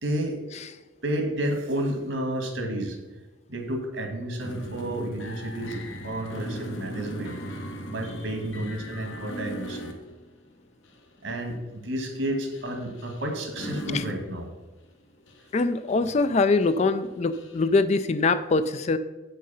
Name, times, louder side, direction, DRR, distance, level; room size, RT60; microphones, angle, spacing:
voice 1, 0.0-0.4 1.0-3.0 3.5-7.3 7.9-9.9 11.2-14.5, right 1 dB, 70° right, 4 dB, 1.7 m, -31 dB
sound 1, 4.4-10.4 10.8-11.0 11.4-11.6 12.5-14.3 14.8-14.9 15.3-15.6 15.9-16.3 16.6-17.7, equal, 75° left, 1.1 m, -38 dB
voice 2, 15.5-19.0, left 3 dB, 35° left, 12 dB, 0.3 m, -23 dB
7.7 x 6.4 x 5.5 m, 1.2 s
head